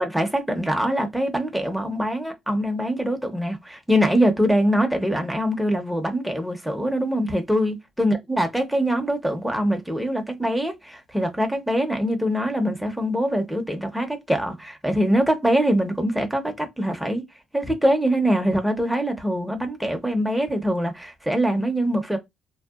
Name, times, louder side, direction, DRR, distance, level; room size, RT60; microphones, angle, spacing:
voice 1, 0.0-17.2 17.5-22.2, equal, 5° right, 0.7 m, -23 dB
2.7 x 2.0 x 2.4 m
cardioid pair, 90°, 0 cm